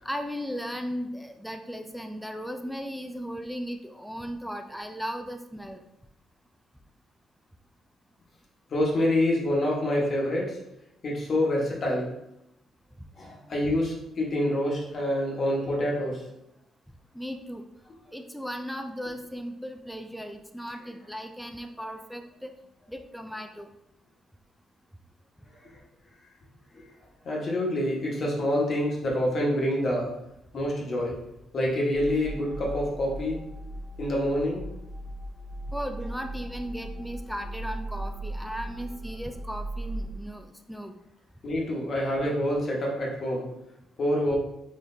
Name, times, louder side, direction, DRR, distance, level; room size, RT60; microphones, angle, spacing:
voice 1, 0.0-5.8 17.1-17.6 18.1-22.5 22.9-23.7 35.7-40.9, equal, ahead, 5 dB, 0.3 m, -36 dB
voice 2, 8.7-10.6 11.0-12.1 13.2-16.2 25.6-25.7 26.7-26.8 27.2-30.1 30.5-31.1 31.5-33.4 34.0-34.6 41.4-43.5 44.0-44.4, left 1 dB, 50° left, -2 dB, 1.2 m, -27 dB
sound 1, 31.9-40.1, right 1 dB, 55° right, 0.6 m, -38 dB
4.0 x 3.2 x 2.6 m, 0.84 s
cardioid pair, 90°, 0 cm